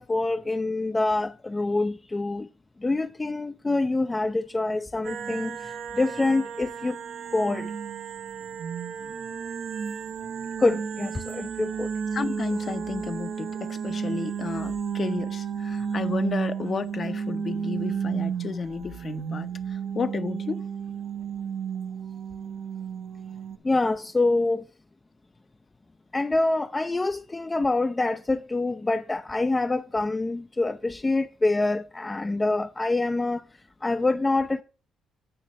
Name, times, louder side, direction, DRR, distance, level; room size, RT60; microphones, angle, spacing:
voice 1, 0.0-2.5 2.8-7.0 7.3-7.7 10.6-11.9 23.6-24.6 26.1-33.4 33.8-34.6, left 2 dB, 20° left, 0.4 m, -26 dB
sound 1, 5.0-23.6, right 7 dB, 65° right, 0.7 m, -33 dB
voice 2, 12.1-19.5 19.9-20.6, left 5 dB, 45° left, 0.7 m, -32 dB
9.0 x 3.3 x 6.2 m
cardioid pair, 90°, 0 cm